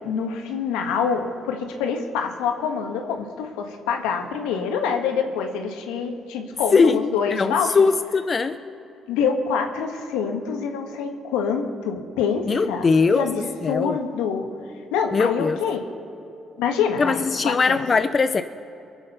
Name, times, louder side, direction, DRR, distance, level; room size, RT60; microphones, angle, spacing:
voice 1, 0.0-7.8 9.1-12.9 13.1-13.4 13.7-14.5 14.9-15.8 16.6-17.8, left 6 dB, 85° left, 4 dB, 1.5 m, -26 dB
voice 2, 6.7-8.6 12.5-13.3 13.6-14.0 15.1-15.6 17.0-18.4, left 4 dB, 40° left, 10 dB, 0.6 m, -20 dB
23.0 x 8.0 x 5.5 m, 2.9 s
hypercardioid pair, 55°, 0 cm